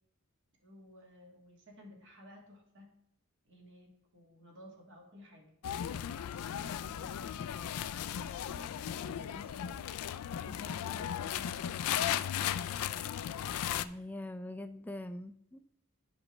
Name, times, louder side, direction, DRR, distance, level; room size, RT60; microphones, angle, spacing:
voice 1, 0.6-2.9 3.4-5.6 6.1-9.9, equal, 55° right, 1 dB, 1.7 m, -55 dB
sound 1, 5.6-13.8, left 10 dB, 80° left, 0.3 m, -36 dB
voice 2, 13.8-15.8, left 1 dB, 5° left, 8 dB, 0.4 m, -43 dB
11.0 x 5.1 x 3.1 m, 0.77 s
head